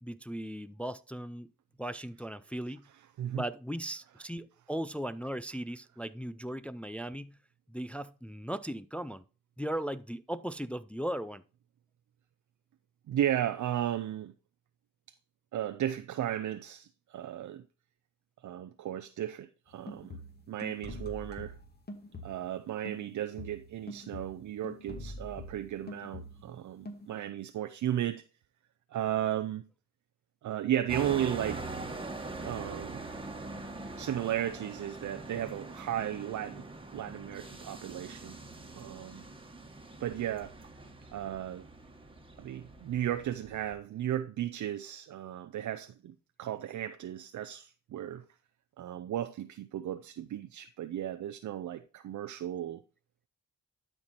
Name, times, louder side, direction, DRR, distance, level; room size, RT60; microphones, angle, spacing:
voice 1, 0.0-1.5 1.8-2.9 3.3-7.4 7.7-9.2 9.6-11.4, right 1 dB, 5° left, 0.4 m, -37 dB
voice 2, 13.1-14.3 15.5-17.6 18.4-20.2 20.5-21.5 22.2-28.2 28.9-29.6 30.4-31.6 32.4-33.0 34.0-36.6 36.9-38.3 38.7-39.2 40.0-40.5 41.1-41.6 42.4-48.2 48.8-52.8, right 11 dB, 70° right, 0.6 m, -35 dB
sound 1, 19.7-22.6 22.8-26.6 26.8-27.3, left 1 dB, 30° left, 2.1 m, -45 dB
sound 2, 30.9-43.7, right 2 dB, 15° right, 1.6 m, -43 dB
12.0 x 4.6 x 4.2 m
cardioid pair, 70°, 31 cm